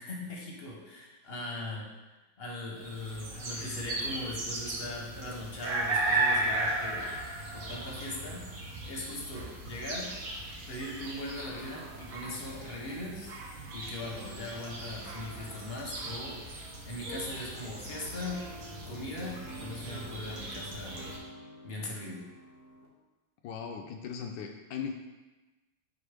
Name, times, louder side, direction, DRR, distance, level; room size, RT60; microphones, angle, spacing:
voice 1, 0.0-1.9 2.4-7.1 7.5-8.5 8.9-10.1 10.7-13.4 13.7-16.4 16.8-18.5 18.9-21.0 21.6-22.2, left 2 dB, 40° left, -2 dB, 0.9 m, -40 dB
sound 1, 2.8-21.2, right 2 dB, 85° right, 1.9 m, -36 dB
sound 2, 17.0-22.9, right 1 dB, 55° right, 1.8 m, -48 dB
voice 2, 23.4-24.9, left 6 dB, 75° left, 3 dB, 1.1 m, -38 dB
7.9 x 2.7 x 5.0 m, 1.1 s
omnidirectional pair, 2.2 m